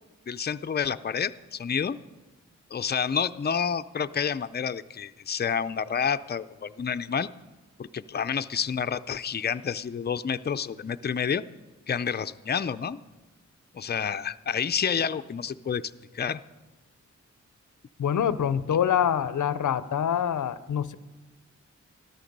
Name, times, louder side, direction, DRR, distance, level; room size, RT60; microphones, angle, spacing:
voice 1, 0.3-2.0 2.7-7.3 7.8-11.4 11.9-13.0 13.7-15.8 16.1-16.4, left 7 dB, 35° left, 10 dB, 0.5 m, -29 dB
voice 2, 18.0-20.9, left 9 dB, 90° left, 15 dB, 0.6 m, -25 dB
13.5 x 13.0 x 5.3 m, 1.2 s
cardioid pair, 60°, 30 cm